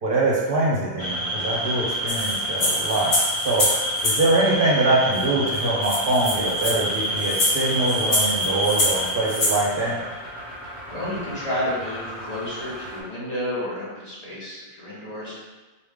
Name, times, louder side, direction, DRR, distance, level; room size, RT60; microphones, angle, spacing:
voice 1, 0.0-3.1 3.4-3.7 4.0-10.0, right 2 dB, 60° right, -4 dB, 0.9 m, -23 dB
sound 1, 1.0-13.0, equal, 20° left, 1.0 m, -29 dB
sound 2, 2.1-4.2 5.2-5.3 5.5-5.6 5.8-9.6, left 1 dB, 85° left, 1.2 m, -25 dB
voice 2, 10.9-15.4, left 1 dB, 40° left, -8 dB, 1.3 m, -31 dB
4.3 x 2.4 x 3.6 m, 1.2 s
omnidirectional pair, 1.0 m